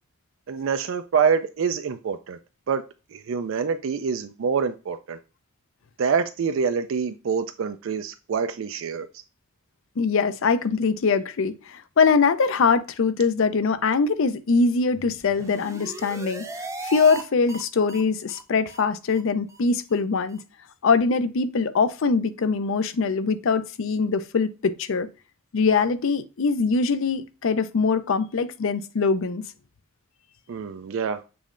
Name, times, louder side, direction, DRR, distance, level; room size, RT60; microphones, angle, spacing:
voice 1, 0.5-2.4 2.7-2.8 3.1-5.2 6.0-9.1 30.5-31.2, right 6 dB, 60° right, 0.4 m, -26 dB
voice 2, 10.0-16.4 16.8-20.4 20.8-25.1 25.5-29.4, left 4 dB, 60° left, 0.5 m, -22 dB
sound 1, 15.2-17.2 17.5-17.6 17.9-18.0 18.3-18.4 18.7-18.8 19.1-19.2 19.5-19.6 19.9-20.0 20.3-20.4, right 3 dB, 15° right, 0.6 m, -37 dB
6.9 x 3.1 x 2.5 m
head